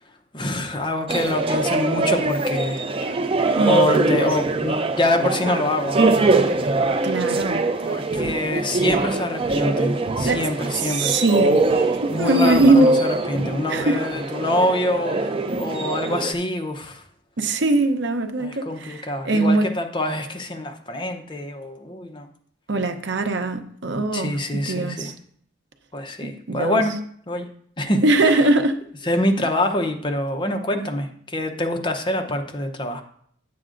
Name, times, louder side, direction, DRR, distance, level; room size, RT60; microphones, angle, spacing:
voice 1, 0.3-2.9 3.7-6.0 7.8-11.1 12.1-15.2 15.6-17.0 18.4-22.3 24.1-25.1 25.9-27.0 27.3-27.5 27.8-28.4 29.0-33.0, left 1 dB, 25° left, 0.7 m, -25 dB
sound 1, 1.1-16.3, right 2 dB, 25° right, 0.4 m, -23 dB
voice 2, 3.6-4.1 7.0-7.6 10.2-10.4 10.8-11.6 12.0-12.9 13.7-14.0 17.4-19.7 22.7-25.1 26.2-26.8 28.0-28.8, right 2 dB, 60° right, 0.7 m, -21 dB
9.9 x 7.7 x 2.5 m
head